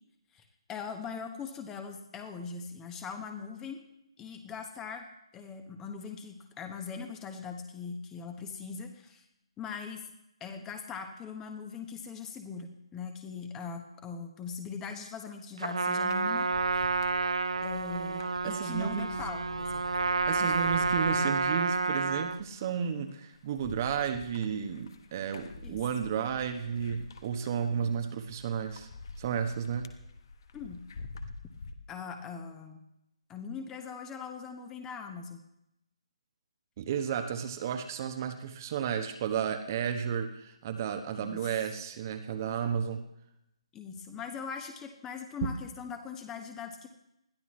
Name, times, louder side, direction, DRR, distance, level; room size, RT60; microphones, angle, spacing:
voice 1, 0.3-3.9 4.2-5.1 5.3-9.2 9.6-10.1 10.4-16.8 17.6-19.9 20.4-20.6 25.6-25.8 27.8-28.0 30.5-30.8 31.9-32.8 33.3-35.4 41.2-41.5 43.7-46.9, left 6 dB, 15° left, 6 dB, 1.2 m, -41 dB
Trumpet, 15.6-22.4, right 3 dB, 65° right, 0.5 m, -30 dB
sound 1, 16.0-31.7, left 3 dB, 45° left, 1.2 m, -47 dB
voice 2, 18.4-19.2 20.3-28.9 29.2-29.9 36.8-43.0, right 7 dB, 30° right, 6 dB, 1.1 m, -33 dB
20.5 x 13.5 x 3.2 m, 0.83 s
figure-of-eight pair, 140°, 3 cm